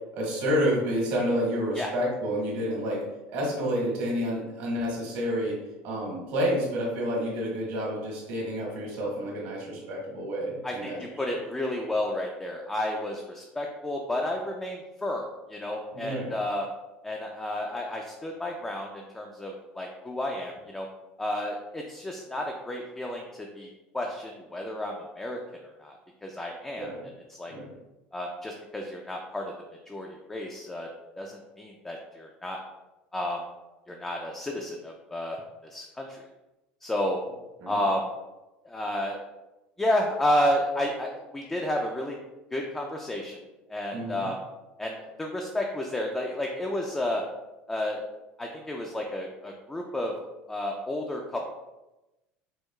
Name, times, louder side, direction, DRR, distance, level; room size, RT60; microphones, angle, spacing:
voice 1, 0.1-3.0 3.3-5.6 5.8-11.0 15.9-16.4 26.7-27.1 27.5-27.7 37.6-37.8 43.9-44.3, equal, 75° right, -3 dB, 1.3 m, -29 dB
voice 2, 10.6-16.7 17.0-20.9 21.2-25.4 25.8-26.9 27.3-27.5 28.1-29.5 29.9-30.9 31.2-32.6 33.1-33.4 33.9-36.2 36.8-37.2 37.7-38.1 38.6-39.2 39.8-42.2 42.5-43.4 43.7-44.4 44.8-47.2 47.7-48.0 48.4-50.1 50.5-51.5, left 1 dB, 10° left, 1 dB, 0.3 m, -31 dB
4.5 x 2.3 x 2.2 m, 1.0 s
supercardioid pair, 120°, 4 cm